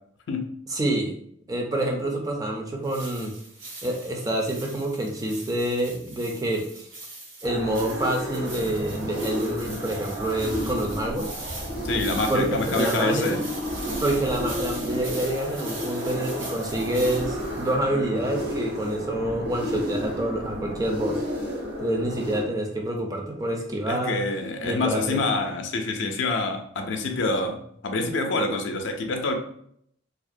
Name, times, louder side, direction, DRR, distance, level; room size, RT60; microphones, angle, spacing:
voice 1, 0.7-1.1 1.5-3.3 3.8-6.9 7.4-11.3 12.3-13.4 14.0-21.2 21.8-24.2 24.6-25.2, right 1 dB, 20° right, 1 dB, 0.3 m, -27 dB
sound 1, 2.8-17.7, right 2 dB, 85° right, 0.9 m, -41 dB
sound 2, 7.4-22.4, left 1 dB, 55° right, 0.7 m, -32 dB
voice 2, 11.8-13.4 23.9-29.4, left 3 dB, 65° left, 5 dB, 0.4 m, -26 dB
2.3 x 2.1 x 2.5 m, 0.67 s
head